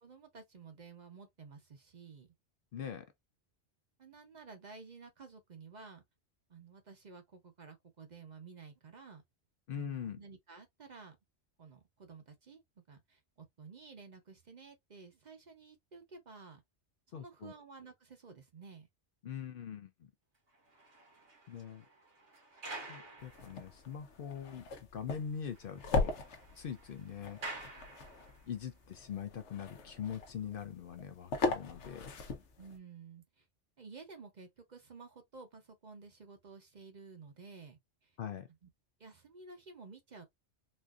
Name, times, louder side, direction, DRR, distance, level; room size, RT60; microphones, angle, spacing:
voice 1, 0.0-2.3 4.0-6.0 6.5-9.2 9.7-11.2 11.6-12.6 12.9-16.6 17.1-18.9 32.6-33.5 33.8-38.1 38.6-38.7 39.0-40.2, right 4 dB, 45° right, 0.7 m, -53 dB
voice 2, 2.7-3.1 9.7-10.2 17.1-17.5 19.2-20.1 21.5-21.9 22.9-26.1 26.6-27.4 28.5-32.1 38.2-38.5, left 8 dB, 60° left, 0.7 m, -42 dB
sound 1, 20.5-24.0 24.5-24.6 25.0-25.1 25.3-28.6, right 2 dB, 85° right, 1.8 m, -49 dB
sound 2, 23.2-32.8, left 3 dB, 80° left, 1.1 m, -39 dB
4.2 x 2.5 x 2.3 m
omnidirectional pair, 1.2 m